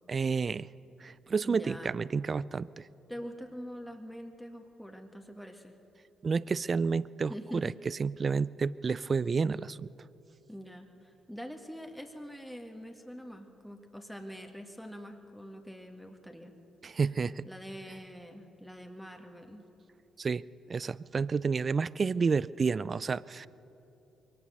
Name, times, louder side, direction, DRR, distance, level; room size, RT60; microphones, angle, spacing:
voice 1, 0.1-0.7 1.0-2.8 6.2-9.9 16.8-17.5 20.2-20.4 20.7-23.5, right 5 dB, 45° right, 21 dB, 0.4 m, -30 dB
voice 2, 1.4-2.0 3.1-5.7 7.3-7.8 10.5-16.5 16.9-17.0 17.4-19.6, equal, 5° left, 3 dB, 2.0 m, -44 dB
22.5 x 18.0 x 6.7 m, 2.9 s
hypercardioid pair, 50°, 0 cm